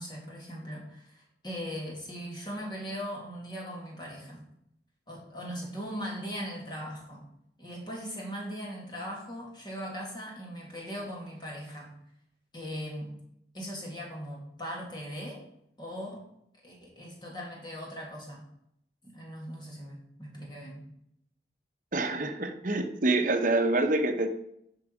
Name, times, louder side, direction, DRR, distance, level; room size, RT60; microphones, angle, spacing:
voice 1, 0.0-4.4 5.1-7.3 7.6-12.0 12.5-13.2 13.5-15.4 15.8-16.2 16.6-18.5 19.0-20.8, equal, 25° left, -2 dB, 2.4 m, -39 dB
voice 2, 21.9-24.3, right 2 dB, 50° right, 7 dB, 0.9 m, -26 dB
11.5 x 4.8 x 4.9 m, 0.75 s
head